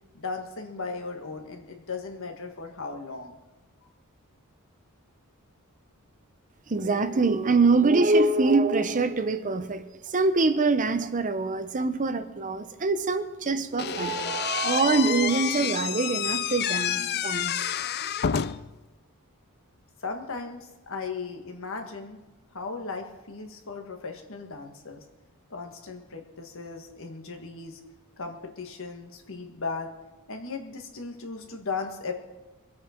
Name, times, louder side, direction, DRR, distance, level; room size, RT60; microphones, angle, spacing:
voice 1, 0.1-3.3 20.0-22.2 22.5-25.0 25.5-27.8 28.2-29.9 30.3-32.1, left 4 dB, 60° left, 4 dB, 1.8 m, -36 dB
voice 2, 6.7-17.5, right 3 dB, 35° right, 11 dB, 0.7 m, -24 dB
Slam / Squeak, 13.8-18.8, left 9 dB, 45° left, 0.5 m, -29 dB
23.5 x 8.5 x 4.5 m, 1.1 s
head